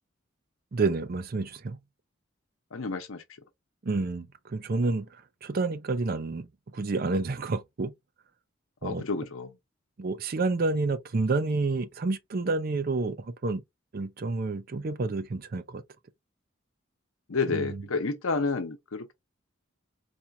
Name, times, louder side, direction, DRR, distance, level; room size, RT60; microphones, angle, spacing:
voice 1, 0.7-1.8 3.8-6.5 6.7-7.9 8.8-9.0 10.0-13.6 13.9-15.8 17.5-17.8, right 3 dB, 45° right, 0.5 m, -29 dB
voice 2, 2.7-3.2 8.8-9.5 17.3-19.1, left 4 dB, 85° left, 0.8 m, -30 dB
4.3 x 2.4 x 2.7 m
head